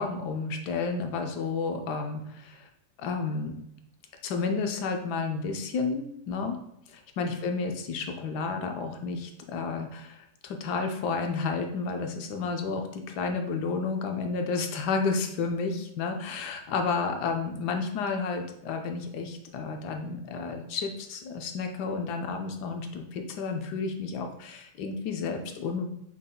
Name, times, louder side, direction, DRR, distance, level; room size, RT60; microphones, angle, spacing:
voice 1, 0.0-2.7 3.0-3.6 4.2-6.6 6.9-25.9, left 4 dB, 75° left, 4 dB, 1.1 m, -31 dB
5.7 x 3.7 x 2.2 m, 0.77 s
omnidirectional pair, 1.8 m